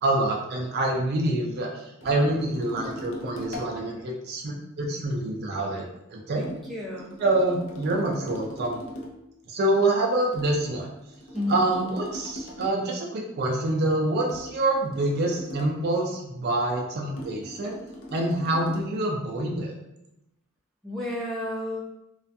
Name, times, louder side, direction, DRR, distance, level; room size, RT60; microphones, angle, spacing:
voice 1, 0.0-6.4 7.2-8.8 9.5-10.9 11.5-17.8 18.1-19.7, right 2 dB, 50° right, 0 dB, 0.4 m, -26 dB
sound 1, 2.0-3.8 6.4-9.3 10.3-12.9 14.3-15.9 17.2-19.0, equal, 70° left, 0.5 m, -41 dB
voice 2, 6.3-7.1 11.3-11.6 20.8-21.8, left 1 dB, ahead, -5 dB, 0.6 m, -31 dB
2.4 x 2.2 x 2.6 m, 0.85 s
head